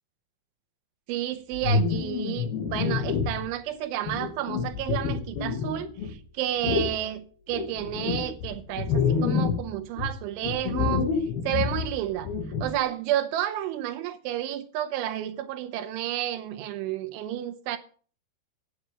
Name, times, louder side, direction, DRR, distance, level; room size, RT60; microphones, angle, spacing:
voice 1, 1.1-11.1 11.4-12.3 12.6-17.8, right 12 dB, 85° right, 3.4 m, -31 dB
sound 1, 1.5-3.5 4.0-6.1 6.6-7.0 7.5-9.7 10.0-12.8, left 5 dB, 60° left, 3.6 m, -28 dB
10.5 x 9.1 x 5.7 m
omnidirectional pair, 5.3 m